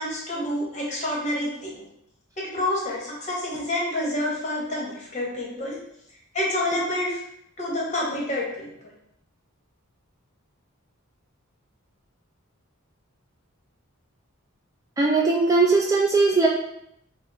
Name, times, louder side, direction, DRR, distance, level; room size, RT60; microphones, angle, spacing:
voice 1, 0.0-1.8 2.4-5.8 6.3-7.2 7.6-8.7, left 1 dB, 35° left, -3 dB, 1.1 m, -28 dB
voice 2, 15.0-16.5, right 3 dB, 15° right, -3 dB, 0.3 m, -19 dB
3.5 x 2.0 x 3.9 m, 0.75 s
head